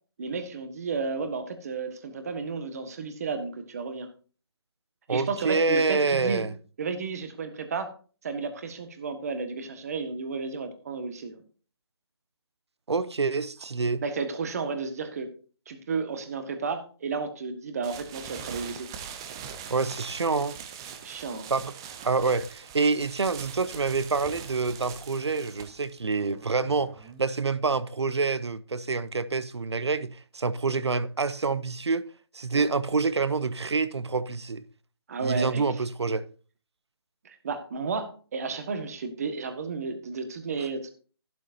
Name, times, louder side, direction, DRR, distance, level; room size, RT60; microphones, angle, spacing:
voice 1, 0.2-4.1 5.1-6.5 6.8-7.9 8.2-11.4 14.0-15.3 15.7-18.9 21.0-21.5 32.5-32.6 35.1-35.6 37.2-40.9, right 4 dB, 35° right, 1.6 m, -32 dB
voice 2, 5.1-6.5 12.9-14.0 19.7-20.6 21.5-21.7 22.0-32.0 32.3-34.6 35.2-36.3, right 4 dB, 85° right, 0.9 m, -27 dB
sound 1, 17.8-27.4, right 8 dB, 10° right, 0.4 m, -42 dB
12.0 x 11.5 x 2.7 m
hypercardioid pair, 165°, 14 cm